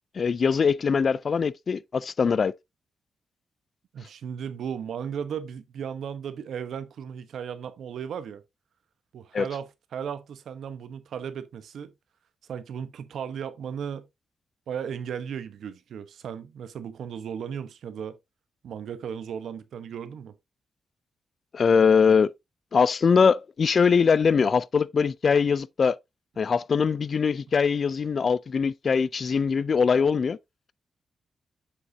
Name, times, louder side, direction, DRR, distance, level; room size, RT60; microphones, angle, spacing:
voice 1, 0.2-2.5 9.3-9.5 21.5-22.3 22.7-26.0 26.4-30.4, left 6 dB, 50° left, 0.3 m, -22 dB
voice 2, 3.9-8.4 9.1-11.9 12.5-14.1 14.7-18.2 18.6-20.3, right 8 dB, 80° right, 0.9 m, -35 dB
7.3 x 6.6 x 2.6 m
cardioid pair, 90°, 0 cm